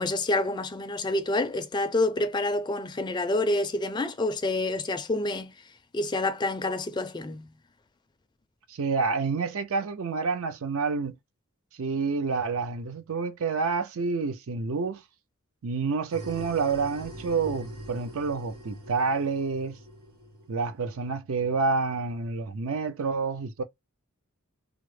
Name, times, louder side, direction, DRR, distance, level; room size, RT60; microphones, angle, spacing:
voice 1, 0.0-5.5 5.9-7.5, left 2 dB, 20° left, 0.4 m, -28 dB
voice 2, 8.7-11.2 11.8-15.0 15.6-19.8 20.5-23.6, right 4 dB, 65° right, 0.5 m, -28 dB
sound 1, 16.1-21.0, equal, 90° right, 1.2 m, -43 dB
3.6 x 2.0 x 3.1 m
head